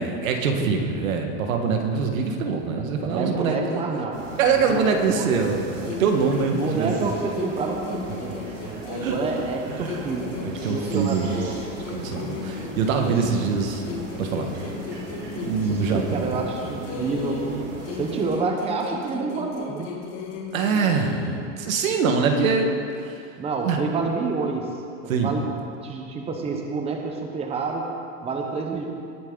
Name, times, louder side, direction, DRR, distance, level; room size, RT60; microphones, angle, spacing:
voice 1, 0.0-3.9 4.4-7.1 9.0-9.2 9.7-10.0 10.4-11.4 11.9-13.8 14.2-14.5 15.3-16.3 20.5-22.7 23.1-23.2 23.6-23.8 25.1-25.3, right 5 dB, 85° right, 3 dB, 1.7 m, -24 dB
voice 2, 2.7-4.2 4.7-5.3 6.5-11.6 13.0-13.3 15.7-19.9 22.3-22.4 23.4-24.7 25.0-25.5 25.8-27.9 28.2-28.9, right 4 dB, 15° right, 1 dB, 1.0 m, -29 dB
sound 1, 4.1-18.2, right 2 dB, 40° right, 3.0 m, -38 dB
sound 2, 5.8-9.5 9.8-13.5 13.8-17.5 17.8-21.5, left 5 dB, 40° left, 1.6 m, -36 dB
19.0 x 7.4 x 3.9 m, 2.4 s
supercardioid pair, 150°, 40 cm